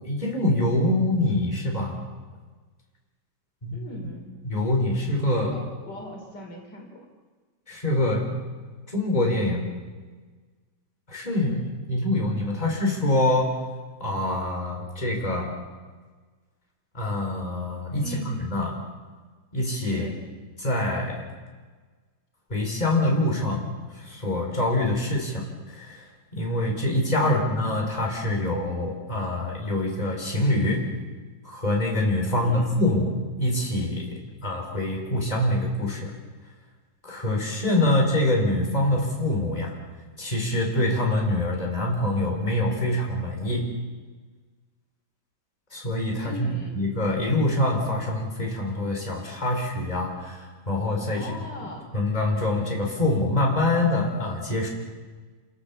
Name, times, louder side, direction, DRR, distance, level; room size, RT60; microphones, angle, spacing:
voice 1, 0.0-2.0 3.6-3.8 4.4-5.5 7.7-8.3 8.9-9.7 11.1-13.6 14.0-15.5 16.9-18.7 19.5-20.1 20.6-21.2 22.5-23.7 24.0-26.1 26.3-30.8 31.4-36.1 37.0-39.7 40.2-43.7 45.7-51.3 51.9-54.7, left 1 dB, 20° left, -1 dB, 4.8 m, -25 dB
voice 2, 3.7-4.3 5.3-7.0 18.0-18.3 19.9-20.2 27.2-27.4 32.3-32.7 46.2-46.8 51.2-51.9, equal, 70° left, 1 dB, 4.4 m, -38 dB
30.0 x 16.5 x 7.2 m, 1.4 s
omnidirectional pair, 1.9 m